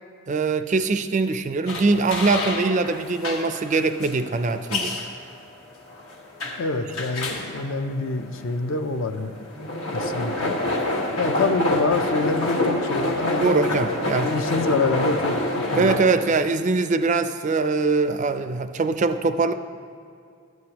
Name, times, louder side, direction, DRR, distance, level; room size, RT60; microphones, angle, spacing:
voice 1, 0.3-5.0 13.4-14.3 15.7-19.5, right 3 dB, 35° right, 10 dB, 0.3 m, -22 dB
sound 1, 1.7-16.0, left 1 dB, 85° left, 1.3 m, -27 dB
voice 2, 6.6-9.4 9.9-10.6 11.2-13.7 14.2-15.4 15.7-16.0, left 3 dB, 60° left, 8 dB, 0.5 m, -26 dB
14.0 x 9.3 x 2.9 m, 2.4 s
head